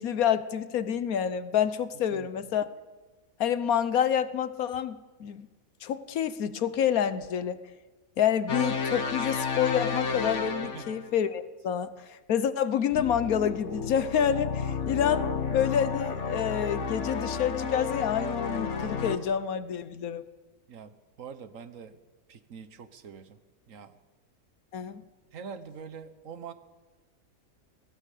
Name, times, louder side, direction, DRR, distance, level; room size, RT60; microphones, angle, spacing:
voice 1, 0.0-2.7 3.4-5.5 5.8-7.6 8.2-20.2 24.7-25.0, left 9 dB, 85° left, 13 dB, 1.4 m, -28 dB
sound 1, 8.5-11.1 12.9-19.2, left 5 dB, 55° left, 1.6 m, -32 dB
voice 2, 20.7-22.0 22.3-23.4 23.7-24.0 25.3-26.5, right 6 dB, 65° right, 11 dB, 1.6 m, -44 dB
19.0 x 16.5 x 8.5 m, 1.2 s
omnidirectional pair, 1.5 m